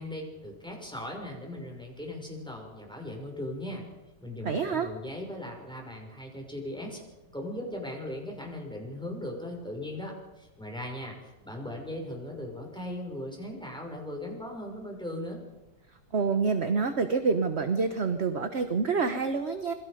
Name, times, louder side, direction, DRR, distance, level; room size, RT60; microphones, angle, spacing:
voice 1, 0.0-3.8 4.2-7.0 7.3-15.4, left 1 dB, ahead, 1 dB, 6.1 m, -38 dB
voice 2, 4.4-4.9 16.1-19.7, right 4 dB, 40° right, 8 dB, 1.2 m, -27 dB
28.0 x 22.0 x 5.2 m, 1.0 s
omnidirectional pair, 2.1 m